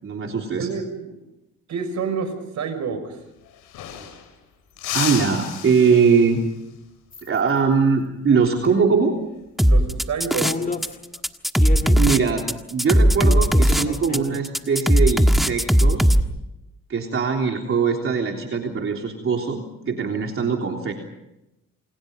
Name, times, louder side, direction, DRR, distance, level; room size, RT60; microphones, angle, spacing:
voice 1, 0.0-0.7 4.9-6.4 7.2-9.2 12.0-12.4 12.7-16.1 16.9-20.9, right 5 dB, 45° right, 1 dB, 3.5 m, -21 dB
voice 2, 0.6-1.2 1.7-3.2 9.7-10.6, right 5 dB, 70° right, 9 dB, 6.1 m, -28 dB
sound 1, 3.1-3.2 3.4-4.4 4.8-6.5 9.0-9.3 10.7-11.2, left 10 dB, 90° left, 5.3 m, -32 dB
sound 2, 7.1-7.4 8.5-8.7 10.4-11.0 11.6-12.1 13.2-14.4, left 4 dB, 30° left, 2.5 m, -30 dB
sound 3, 9.6-10.9 11.1-16.2, equal, ahead, 1.5 m, -17 dB
28.5 x 28.0 x 5.4 m, 0.91 s
cardioid pair, 90°, 30 cm